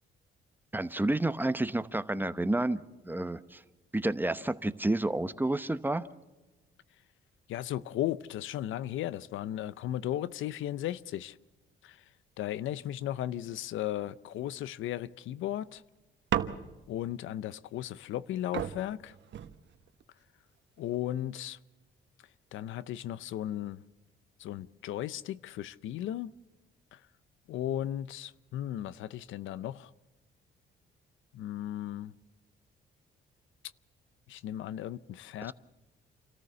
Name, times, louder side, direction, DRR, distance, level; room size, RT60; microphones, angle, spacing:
voice 1, 0.7-3.6 3.9-6.0, right 2 dB, 10° right, 0.9 m, -30 dB
voice 2, 7.5-11.4 11.8-12.0 12.4-15.8 16.9-19.1 20.8-21.6 22.5-23.8 24.4-26.3 26.9-27.0 27.5-29.9 31.3-32.1 34.3-35.5, left 12 dB, 80° left, 0.6 m, -36 dB
sound 1, 16.3-17.0 18.2-18.3 18.5-20.0 20.8-21.2, right 10 dB, 65° right, 1.2 m, -35 dB
27.5 x 14.0 x 6.8 m
cardioid pair, 90°, 20 cm